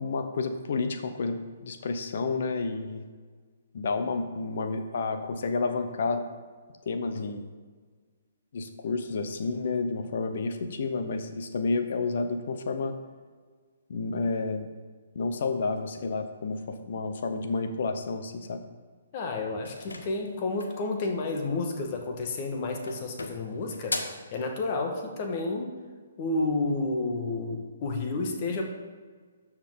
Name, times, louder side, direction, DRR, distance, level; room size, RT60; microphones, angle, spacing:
voice 1, 0.0-3.0 3.7-6.2 6.9-7.4 8.5-12.9 13.9-14.7 15.1-18.6, left 4 dB, 60° left, 7 dB, 0.9 m, -30 dB
voice 2, 19.1-25.7 26.2-28.6, left 3 dB, 40° left, 3 dB, 1.4 m, -31 dB
sound 1, 19.6-20.9 22.1-22.5 22.9-24.3, left 2 dB, 80° left, 1.0 m, -37 dB
13.0 x 4.9 x 3.8 m, 1.5 s
figure-of-eight pair, 130°, 0 cm